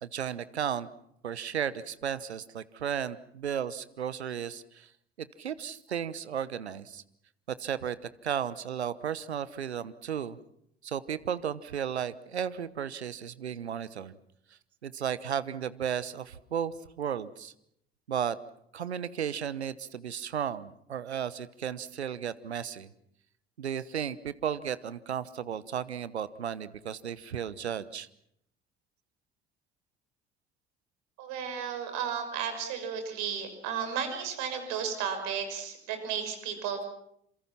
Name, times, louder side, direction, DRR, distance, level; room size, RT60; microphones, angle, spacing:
voice 1, 0.0-0.9 1.2-4.9 5.2-7.0 7.6-8.0 8.2-10.4 10.8-14.1 14.8-17.5 18.1-18.4 18.7-22.9 23.6-28.1, right 8 dB, 80° right, 17 dB, 1.1 m, -34 dB
voice 2, 31.2-36.9, right 7 dB, 60° right, 7 dB, 6.1 m, -34 dB
28.0 x 26.5 x 5.9 m, 0.73 s
figure-of-eight pair, 55°, 32 cm